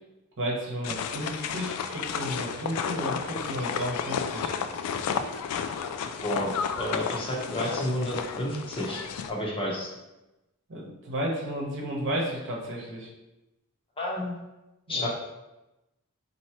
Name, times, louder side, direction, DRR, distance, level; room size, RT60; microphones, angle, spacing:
voice 1, 0.4-4.5 10.7-13.1 14.9-15.1, equal, 55° right, -3 dB, 0.9 m, -33 dB
sound 1, 0.8-9.3, left 7 dB, 80° left, 0.3 m, -32 dB
voice 2, 6.2-9.0 9.3-9.9 14.0-14.4 14.9-15.1, left 1 dB, 25° left, -3 dB, 0.7 m, -30 dB
4.5 x 2.8 x 2.9 m, 0.99 s
head